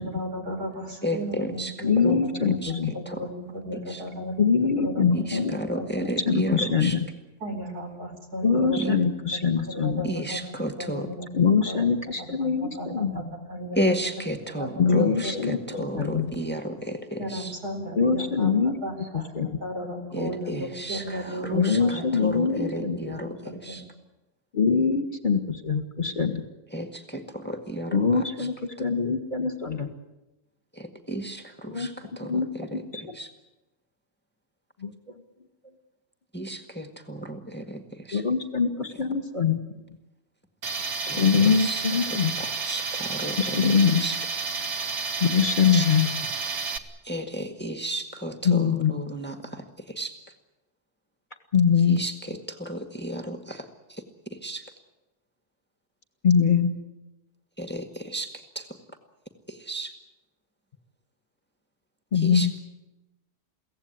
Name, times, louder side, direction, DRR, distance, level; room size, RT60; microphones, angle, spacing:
voice 1, 0.0-2.6 2.9-4.4 4.8-5.4 5.7-6.1 7.4-11.8 12.4-13.2 13.5-14.0 14.4-15.4 15.7-16.1 17.2-19.3 19.6-22.9 23.2-23.8, equal, 75° right, 3 dB, 4.9 m, -35 dB
voice 2, 1.0-1.7 2.0-2.2 2.6-2.7 3.1-3.2 3.9-4.0 5.1-7.0 8.8-9.0 10.0-11.1 13.8-17.5 20.1-23.3 23.6-23.8 26.7-28.0 30.8-31.9 32.2-32.3 32.6-32.8 33.2-33.3 36.3-37.8 38.1-38.2 41.1-41.2 41.6-41.8 42.4-43.6 44.0-44.2 45.7-45.9 47.1-49.6 49.9-50.1 51.9-52.1 52.5-53.7 54.4-54.6 57.6-58.3 58.6-58.7 59.5-59.9 62.2-62.6, right 1 dB, 5° left, 5 dB, 1.6 m, -32 dB
voice 3, 1.8-2.9 4.4-5.6 6.3-7.1 8.4-10.1 11.3-13.2 14.8-15.6 15.9-16.3 17.9-19.5 21.5-23.2 24.5-26.5 27.9-29.9 31.7-31.9 32.2-33.2 34.8-34.9 38.1-39.6 41.0-42.3 43.4-44.0 45.2-46.1 48.4-48.9 51.5-52.0 56.2-56.7 62.1-62.5, left 6 dB, 30° left, 6 dB, 1.8 m, -23 dB
Tools, 40.6-46.8, right 4 dB, 50° right, 1.6 m, -31 dB
23.5 x 17.0 x 9.7 m, 1.0 s
omnidirectional pair, 1.6 m